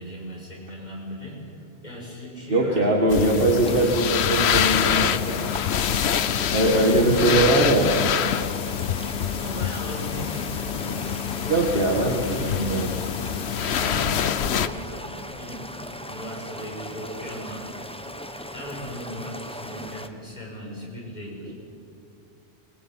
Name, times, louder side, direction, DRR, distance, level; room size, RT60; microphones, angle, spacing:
voice 1, 0.0-3.5 6.2-6.5 6.7-8.0 9.4-11.3 12.2-12.6 13.5-15.1 15.4-15.7 16.0-17.7 18.5-21.5, equal, 40° left, -3 dB, 6.5 m, -37 dB
voice 2, 2.5-5.2 6.5-7.9 11.5-12.9 21.5-21.6, right 2 dB, 50° right, 0 dB, 2.2 m, -21 dB
sound 1, 3.1-14.7, left 9 dB, 70° left, 1.0 m, -26 dB
sound 2, 3.6-20.1, equal, 5° left, 1.2 m, -38 dB
21.5 x 21.0 x 9.1 m, 2.6 s
omnidirectional pair, 1.2 m